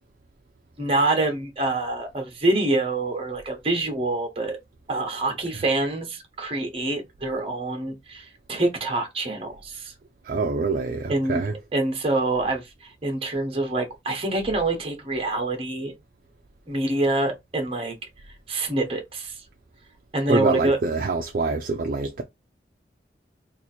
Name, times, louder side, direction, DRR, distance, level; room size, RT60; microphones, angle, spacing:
voice 1, 0.8-4.6 4.9-9.9 11.1-11.4 11.7-15.9 16.7-17.9 18.5-19.4 20.1-20.8, right 2 dB, 35° right, 1.0 m, -26 dB
voice 2, 10.2-11.5 20.3-22.2, right 3 dB, 50° right, 0.4 m, -25 dB
2.9 x 2.5 x 4.2 m
head